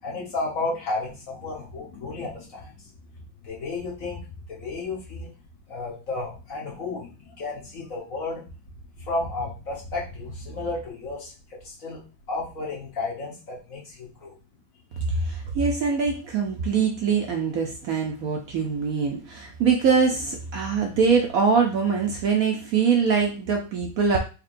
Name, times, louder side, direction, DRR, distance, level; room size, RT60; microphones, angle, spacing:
voice 1, 0.0-2.9 3.4-4.2 4.5-5.3 5.7-8.4 8.9-11.3 11.6-12.0 12.3-14.3 14.9-15.1, left 3 dB, 50° left, -4 dB, 1.4 m, -32 dB
voice 2, 15.1-24.2, right 5 dB, 65° right, 2 dB, 0.9 m, -23 dB
4.2 x 3.3 x 2.5 m, 0.33 s
omnidirectional pair, 2.0 m